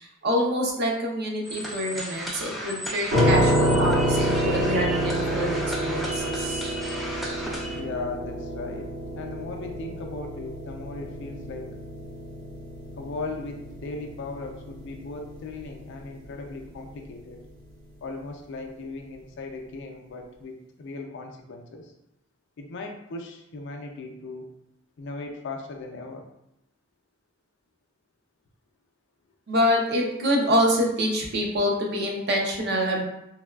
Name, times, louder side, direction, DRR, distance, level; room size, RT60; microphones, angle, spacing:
voice 1, 0.0-6.7 29.5-33.0, equal, 55° right, 0 dB, 0.6 m, -26 dB
sound 1, 1.4-7.8, equal, ahead, 0.4 m, -35 dB
sound 2, 3.1-16.0, equal, 70° right, 1.2 m, -28 dB
voice 2, 7.7-11.7 13.0-17.4 18.0-21.9 22.6-24.5 25.0-26.3, left 3 dB, 60° left, 3 dB, 0.4 m, -37 dB
3.3 x 2.2 x 2.2 m, 0.84 s
head